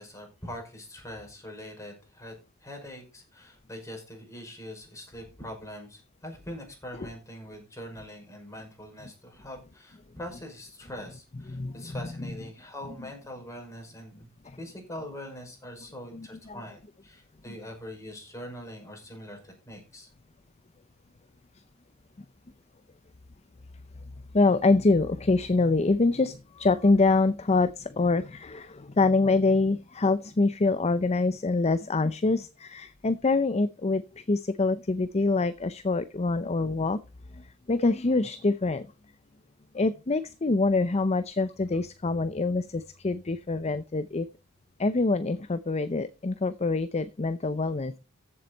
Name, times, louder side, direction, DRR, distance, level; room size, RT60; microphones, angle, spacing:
voice 1, 0.0-2.3 2.6-14.3 14.6-20.1, equal, 15° left, 2 dB, 5.5 m, -43 dB
voice 2, 11.5-12.3 14.5-14.6 16.1-16.6 24.3-37.0 37.3-38.9 39.7-44.3 44.8-47.9, left 3 dB, 30° left, 13 dB, 0.6 m, -25 dB
14.5 x 7.8 x 4.1 m, 0.29 s
head